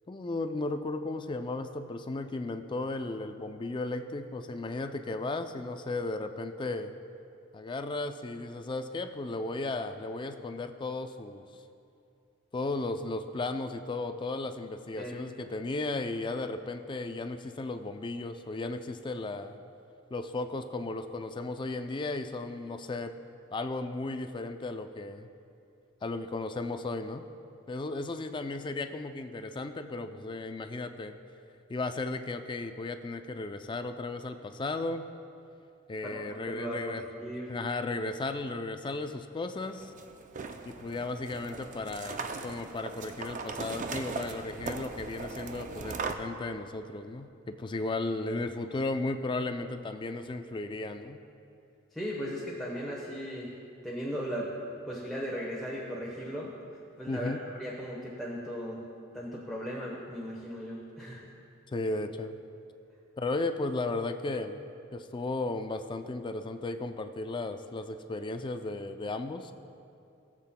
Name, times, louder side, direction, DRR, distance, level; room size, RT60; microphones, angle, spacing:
voice 1, 0.1-6.9 7.5-11.5 12.5-19.6 20.1-23.1 23.5-25.3 26.0-27.3 27.7-31.2 31.7-35.1 35.9-37.0 37.5-39.9 40.6-51.2 57.1-57.4 61.7-62.4 63.2-64.6 64.9-69.5, left 2 dB, 25° left, 8 dB, 0.3 m, -35 dB
voice 2, 36.1-37.5 51.9-53.5 53.8-54.5 54.9-56.5 57.0-58.8 59.1-61.3, equal, ahead, -5 dB, 1.0 m, -37 dB
sound 1, 39.6-46.1, right 4 dB, 35° right, 0.5 m, -39 dB
19.0 x 7.4 x 2.2 m, 2.6 s
head